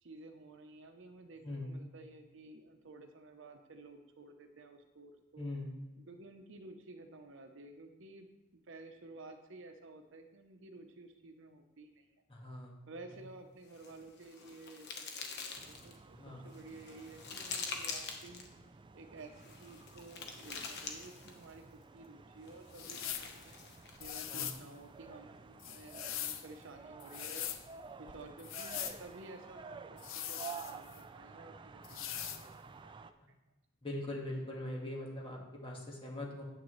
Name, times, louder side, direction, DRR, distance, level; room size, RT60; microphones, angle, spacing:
voice 1, 0.0-5.5 6.1-12.1 12.9-16.2 16.4-18.5 18.9-23.6 24.0-27.6 28.0-32.9, right 2 dB, 65° right, 6 dB, 0.7 m, -53 dB
voice 2, 5.4-5.7 12.3-12.8 16.1-16.5 24.3-24.5 33.8-36.4, left 1 dB, 25° left, -1 dB, 1.7 m, -41 dB
sound 1, 13.7-16.0 16.5-18.5 19.4-21.5 22.5-24.0, left 5 dB, 55° left, 1.1 m, -45 dB
sound 2, 15.5-33.1, right 5 dB, 25° right, 0.3 m, -52 dB
sound 3, 22.7-23.3 24.0-24.6 25.6-26.5 27.0-27.6 28.4-29.0 30.0-31.0 31.8-32.4, left 10 dB, 75° left, 0.6 m, -41 dB
9.0 x 8.0 x 3.1 m, 1.0 s
head